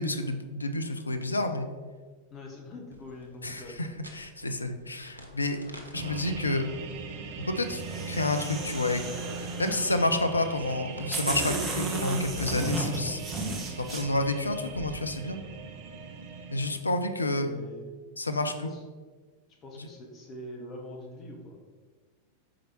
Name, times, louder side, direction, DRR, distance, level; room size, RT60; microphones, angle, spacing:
voice 1, 0.0-1.7 3.4-3.9 4.1-5.6 5.9-6.6 7.5-7.8 8.1-9.0 9.4-13.2 13.8-15.4 16.5-17.5 18.2-18.7 19.8-19.9, left 2 dB, 80° left, 7 dB, 0.5 m, -29 dB
voice 2, 2.3-3.9 17.3-17.9 18.2-18.8 19.6-21.6, left 1 dB, 30° left, 0 dB, 1.3 m, -44 dB
sound 1, 2.9-14.8, equal, 85° right, 0.7 m, -50 dB
sound 2, 5.9-16.8, right 4 dB, 50° right, 0.7 m, -40 dB
sound 3, 7.7-10.0 10.7-10.8 11.1-14.0, right 2 dB, 20° right, 0.9 m, -34 dB
4.8 x 4.5 x 4.4 m, 1.4 s
figure-of-eight pair, 90°, 0 cm